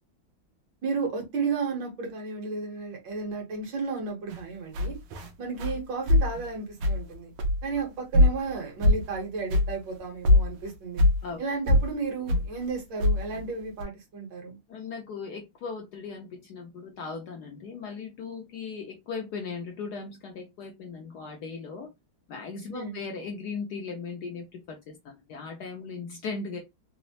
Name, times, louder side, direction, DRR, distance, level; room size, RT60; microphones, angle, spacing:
voice 1, 0.8-5.0 5.4-7.3 7.6-11.0 11.4-14.6 22.7-23.0, right 4 dB, 65° right, 1.7 m, -33 dB
sound 1, 4.3-4.4 4.7-5.3 5.6-5.8 6.1-6.4 6.8-7.1 7.4-7.8 8.1-8.5 8.8-9.2 9.5-9.7 10.0-10.1 10.2-11.2 11.7-11.9 12.3-12.5 13.0-13.4 13.8-13.9, left 1 dB, 85° right, 1.5 m, -22 dB
voice 2, 14.7-21.9 22.3-26.6, left 5 dB, 70° left, 1.0 m, -38 dB
4.0 x 2.0 x 2.7 m
omnidirectional pair, 2.2 m